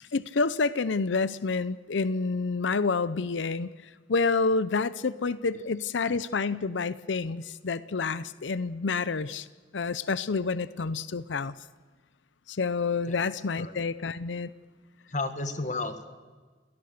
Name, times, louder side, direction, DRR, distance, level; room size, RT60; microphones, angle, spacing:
voice 1, 0.1-3.7 4.1-9.5 9.7-11.5 12.5-14.5, left 4 dB, 75° left, 17 dB, 0.6 m, -28 dB
voice 2, 15.1-16.1, left 3 dB, 40° left, 9 dB, 1.7 m, -32 dB
29.0 x 18.5 x 6.6 m, 1.4 s
head